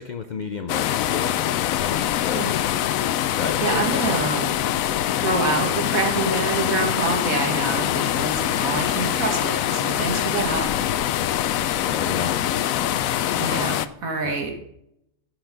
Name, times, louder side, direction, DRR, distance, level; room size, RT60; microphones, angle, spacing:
voice 1, 0.0-1.5 1.8-2.4 3.3-4.2 11.8-12.4 14.2-14.4, left 5 dB, 55° left, 8 dB, 0.5 m, -32 dB
sound 1, 0.7-13.9, left 11 dB, 75° left, 1.0 m, -24 dB
voice 2, 3.6-4.5 5.2-10.7 13.4-14.5, right 3 dB, 75° right, 3 dB, 2.2 m, -26 dB
10.5 x 6.1 x 5.1 m, 0.77 s
omnidirectional pair, 1.5 m